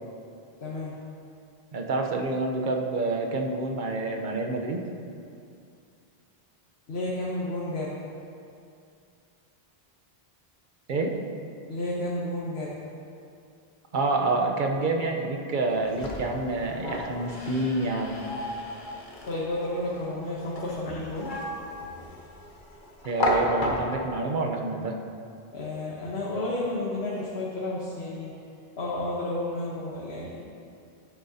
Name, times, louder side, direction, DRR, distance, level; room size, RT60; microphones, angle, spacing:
voice 1, 0.6-0.9 6.9-7.9 11.7-12.8 19.3-21.3 25.5-28.3 28.8-30.4, left 1 dB, 90° left, -5 dB, 1.3 m, -31 dB
voice 2, 1.7-4.8 10.9-11.1 13.9-18.2 23.0-24.9, right 3 dB, 55° right, 2 dB, 0.9 m, -28 dB
sound 1, 15.7-24.2, left 1 dB, 55° left, 1.2 m, -34 dB
11.0 x 8.6 x 2.8 m, 2.5 s
omnidirectional pair, 1.0 m